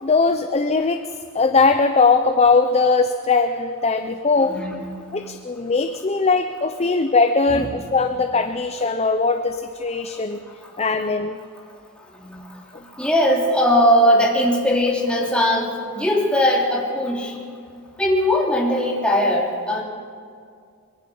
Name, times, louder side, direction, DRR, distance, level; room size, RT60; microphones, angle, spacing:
voice 1, 0.0-4.6 5.1-10.4 10.8-11.4, left 4 dB, 30° left, 7 dB, 0.7 m, -20 dB
voice 2, 4.4-5.1 7.5-7.7 12.1-17.4 18.0-19.8, equal, 5° left, -3 dB, 3.0 m, -20 dB
24.0 x 22.0 x 5.5 m, 2.2 s
head